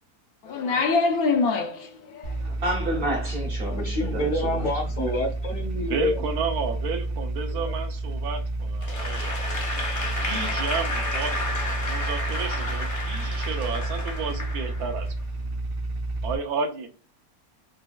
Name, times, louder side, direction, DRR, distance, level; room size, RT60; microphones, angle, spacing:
voice 1, 0.4-2.5, left 4 dB, 80° left, 1.1 m, -25 dB
sound 1, 2.2-16.4, right 2 dB, 70° right, 0.5 m, -30 dB
voice 2, 2.4-4.7, right 1 dB, 50° right, 0.8 m, -30 dB
voice 3, 3.8-6.2 7.5-7.6, left 1 dB, 65° left, 1.1 m, -27 dB
voice 4, 5.8-9.6 10.2-11.4 11.8-15.1 16.2-16.9, right 5 dB, 90° right, 1.1 m, -32 dB
Applause / Crowd, 8.8-15.1, left 2 dB, 45° left, 0.4 m, -31 dB
4.1 x 2.1 x 2.2 m
omnidirectional pair, 1.6 m